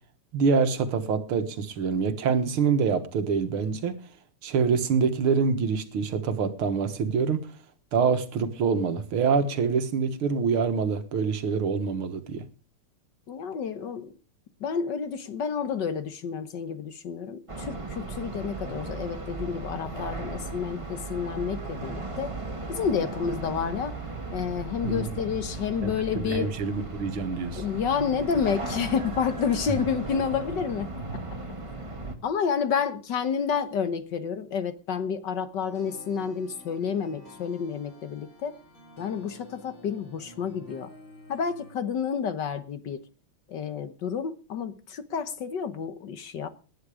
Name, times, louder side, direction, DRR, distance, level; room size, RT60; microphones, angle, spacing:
voice 1, 0.3-4.0 4.4-7.4 7.9-12.4 24.8-25.1 25.8-27.6 29.7-29.8, right 5 dB, 75° right, 9 dB, 2.3 m, -25 dB
voice 2, 13.3-14.1 14.6-22.4 22.7-23.9 24.3-26.5 27.5-30.9 32.2-38.5 39.0-40.9 41.3-43.0 43.5-46.5, left 7 dB, 60° left, 11 dB, 1.6 m, -30 dB
sound 1, 17.5-32.2, right 2 dB, 15° right, 1.6 m, -36 dB
sound 2, 35.6-41.7, left 1 dB, 40° left, 7.1 m, -50 dB
19.0 x 9.9 x 5.0 m, 0.37 s
omnidirectional pair, 2.4 m